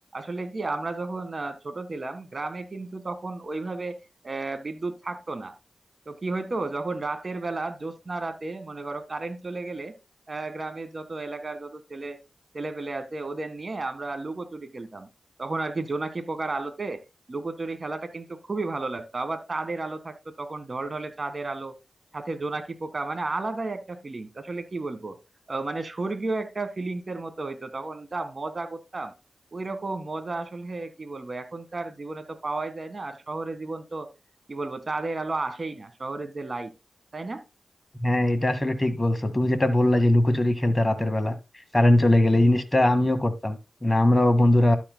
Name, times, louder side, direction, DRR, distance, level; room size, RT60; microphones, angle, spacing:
voice 1, 0.1-4.0 4.2-5.5 6.1-9.9 10.3-12.2 12.5-15.1 15.4-17.0 17.3-21.7 22.1-25.2 25.5-29.1 29.5-34.1 34.5-36.7 37.1-37.4, right 3 dB, 45° right, 1.7 m, -33 dB
voice 2, 38.0-41.3 41.7-44.8, left 1 dB, 20° left, 1.9 m, -21 dB
12.0 x 8.7 x 2.2 m
cardioid pair, 55°, 0 cm